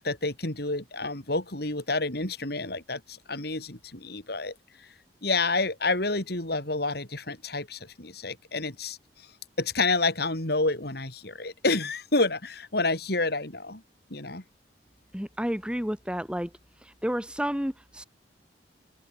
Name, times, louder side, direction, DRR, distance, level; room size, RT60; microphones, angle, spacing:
voice 1, 0.0-4.5 5.2-9.0 9.6-13.8 14.1-14.4, left 3 dB, 60° left, 4.0 m, -29 dB
voice 2, 15.1-16.5 16.8-18.0, equal, 5° right, 1.9 m, -31 dB
open air
head